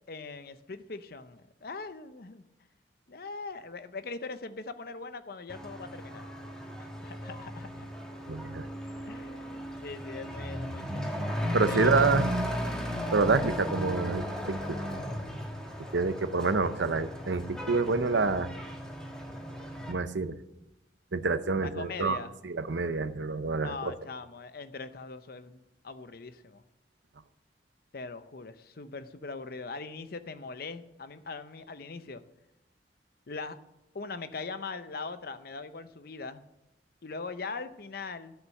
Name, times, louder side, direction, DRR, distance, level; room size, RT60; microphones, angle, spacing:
voice 1, 0.1-2.4 3.1-6.3 6.8-7.9 9.1-11.3 11.7-12.0 21.6-22.3 23.6-26.6 27.9-32.2 33.3-33.6 33.9-36.4 37.0-38.3, left 4 dB, 55° left, 12 dB, 0.7 m, -41 dB
Truck / Accelerating revving vroom, 5.5-19.9, equal, 5° left, 1.5 m, -35 dB
voice 2, 8.3-8.7 11.5-12.3 13.1-14.8 15.9-18.5 19.9-20.3 21.1-22.2 22.4-23.9, right 4 dB, 85° right, 12 dB, 0.7 m, -27 dB
12.5 x 6.3 x 7.7 m, 0.91 s
head